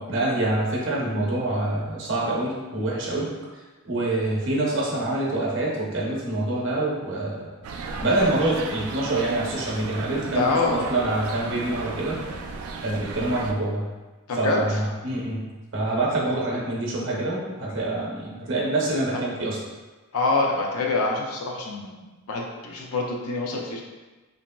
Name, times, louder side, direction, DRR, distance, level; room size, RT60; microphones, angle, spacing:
voice 1, 0.0-3.3 3.8-7.5 8.0-12.2 12.8-13.8 14.4-15.5 15.7-19.6, right 2 dB, 60° right, -4 dB, 0.7 m, -26 dB
sound 1, 7.6-13.5, right 4 dB, 90° right, 0.3 m, -35 dB
voice 2, 10.3-10.9 14.3-14.8 20.1-23.8, left 3 dB, 80° left, 0 dB, 0.5 m, -26 dB
2.8 x 2.7 x 2.2 m, 1.2 s
head